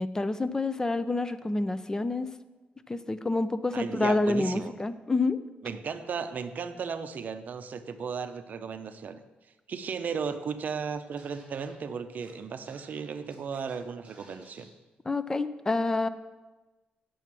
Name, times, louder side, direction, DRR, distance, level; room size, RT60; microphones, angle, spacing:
voice 1, 0.0-2.3 2.9-5.4 15.1-16.1, left 2 dB, 20° left, 12 dB, 0.4 m, -28 dB
voice 2, 3.7-4.7 5.6-9.2 9.7-14.7, right 6 dB, 55° right, 10 dB, 0.6 m, -35 dB
Scratching (performance technique), 11.2-11.8 12.2-12.3 12.7-13.8 14.0-14.7, right 2 dB, 30° right, 2.8 m, -56 dB
9.1 x 6.9 x 6.0 m, 1.2 s
cardioid pair, 110°, 3 cm